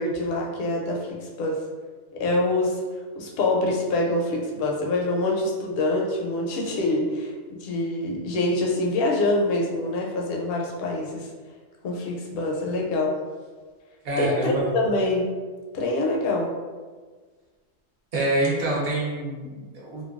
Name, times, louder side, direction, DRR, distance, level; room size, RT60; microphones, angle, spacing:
voice 1, 0.0-1.6 2.1-2.8 3.2-11.3 11.8-13.1 14.2-15.3 15.7-16.5, left 2 dB, 60° left, -1 dB, 0.7 m, -25 dB
voice 2, 14.0-14.6 18.1-20.0, right 1 dB, 55° right, -5 dB, 0.9 m, -26 dB
3.1 x 2.2 x 2.4 m, 1.4 s
omnidirectional pair, 1.3 m